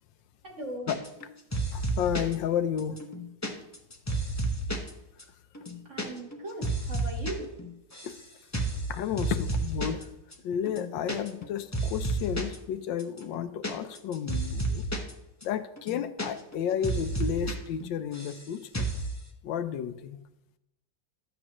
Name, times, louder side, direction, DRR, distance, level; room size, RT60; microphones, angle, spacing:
voice 1, 0.4-1.0 5.9-7.5, right 1 dB, 40° right, 1 dB, 1.7 m, -38 dB
sound 1, 0.9-1.3 1.5-2.3 2.8-4.9 5.2-5.3 5.5-6.1 6.3-7.3 7.6-8.2 8.5-8.8 9.2-10.0 10.3-10.4 10.7-11.5 11.7-12.6 13.0-15.1 15.4-15.5 15.8-16.6 16.8-17.5 17.8-18.4 18.7-19.1, right 2 dB, 25° left, 0.4 m, -31 dB
voice 2, 1.7-3.0 8.0-8.1 8.9-10.1 10.4-14.8 15.4-18.9 19.4-20.2, left 9 dB, 80° left, 10 dB, 1.3 m, -32 dB
12.0 x 8.6 x 3.0 m, 0.85 s
omnidirectional pair, 2.0 m